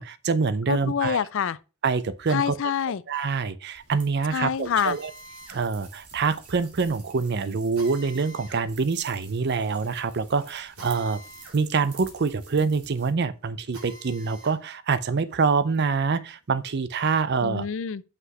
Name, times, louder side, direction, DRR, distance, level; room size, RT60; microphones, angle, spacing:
voice 1, 0.0-1.2 1.8-2.6 3.1-5.1 5.5-11.2 11.5-17.7, right 4 dB, 50° right, 0.5 m, -25 dB
voice 2, 0.7-1.6 2.3-3.0 4.3-5.0 17.4-18.0, left 7 dB, 55° left, 0.4 m, -26 dB
sound 1, 3.7-13.1, right 5 dB, 90° right, 2.1 m, -50 dB
Drill, 4.8-14.6 15.0-16.7, right 1 dB, 65° right, 3.1 m, -49 dB
6.0 x 5.5 x 5.4 m
head